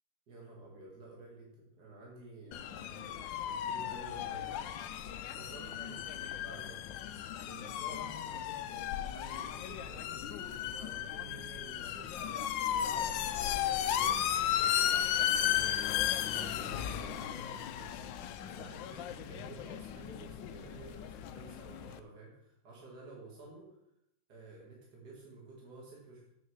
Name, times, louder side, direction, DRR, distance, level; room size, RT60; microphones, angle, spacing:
voice 1, 0.3-4.6 5.3-6.9 7.5-12.4 12.7-15.8 16.3-18.1 18.5-23.7 24.3-26.3, right 2 dB, 55° right, -4 dB, 2.7 m, -52 dB
sound 1, 2.5-22.0, left 10 dB, 75° left, 1.2 m, -35 dB
7.4 x 6.5 x 7.2 m, 0.80 s
omnidirectional pair, 2.1 m